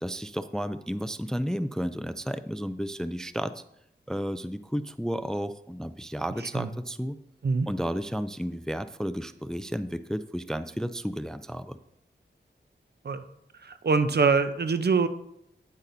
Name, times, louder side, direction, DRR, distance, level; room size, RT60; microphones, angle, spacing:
voice 1, 0.0-3.6 4.1-7.2 7.7-11.8, equal, 5° left, 12 dB, 0.3 m, -32 dB
voice 2, 13.6-15.1, right 4 dB, 60° right, 11 dB, 0.6 m, -24 dB
9.7 x 8.2 x 2.6 m, 0.78 s
wide cardioid pair, 65°, 19 cm